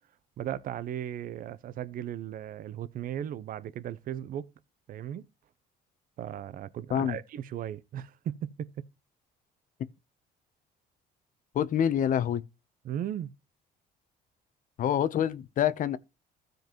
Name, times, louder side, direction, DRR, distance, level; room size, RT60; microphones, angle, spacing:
voice 1, 0.4-4.5 4.9-5.2 6.2-8.7 12.8-13.3, right 10 dB, 55° right, 0.7 m, -36 dB
voice 2, 11.5-12.4 14.8-16.0, left 9 dB, 55° left, 0.8 m, -26 dB
15.0 x 5.2 x 3.0 m
cardioid pair, 110°, 17 cm